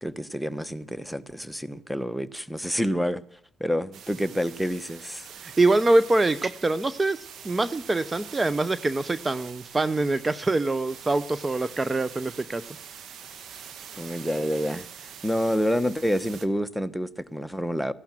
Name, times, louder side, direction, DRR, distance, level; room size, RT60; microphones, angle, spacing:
voice 1, 0.0-3.2 3.6-5.3 13.9-14.9 15.2-17.9, equal, ahead, 1.1 m, -28 dB
sound 1, 3.9-16.5, right 8 dB, 60° right, 1.6 m, -44 dB
voice 2, 5.4-12.6, right 2 dB, 25° right, 0.8 m, -24 dB
15.5 x 11.5 x 7.6 m
hypercardioid pair, 55°, 0 cm